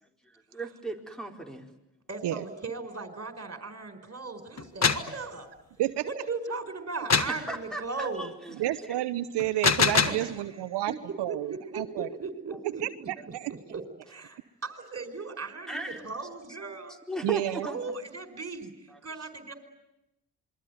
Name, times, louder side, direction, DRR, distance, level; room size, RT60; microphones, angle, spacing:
voice 1, 0.5-1.7 7.3-8.9 15.7-16.1 17.1-17.8 18.9-19.0, right 1 dB, ahead, 4 dB, 4.6 m, -37 dB
voice 2, 2.1-5.5 6.0-8.3 10.0-10.3 10.9-11.0 11.3-13.1 13.5-16.9 17.6-19.5, right 4 dB, 35° right, 8 dB, 5.0 m, -37 dB
sound 1, 4.6-5.1 7.1-7.4 9.4-10.3, left 5 dB, 40° left, 1.7 m, -24 dB
voice 3, 8.6-12.1 12.8-12.9 13.3-13.5 17.2-17.7, right 14 dB, 75° right, 12 dB, 0.9 m, -30 dB
27.0 x 23.0 x 9.4 m, 0.90 s
hypercardioid pair, 45°, 42 cm